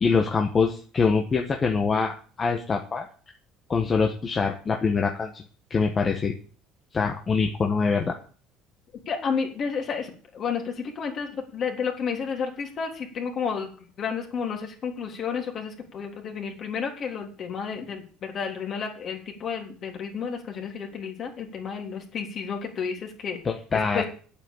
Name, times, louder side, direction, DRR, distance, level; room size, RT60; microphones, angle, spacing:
voice 1, 0.0-3.1 3.7-5.4 5.7-6.3 6.9-8.1 23.4-24.0, left 5 dB, 30° left, 2 dB, 1.5 m, -24 dB
voice 2, 9.1-13.7 14.0-23.4 23.9-24.0, left 6 dB, 45° left, 2 dB, 3.6 m, -31 dB
8.7 x 7.8 x 8.9 m, 0.41 s
supercardioid pair, 105°, 0 cm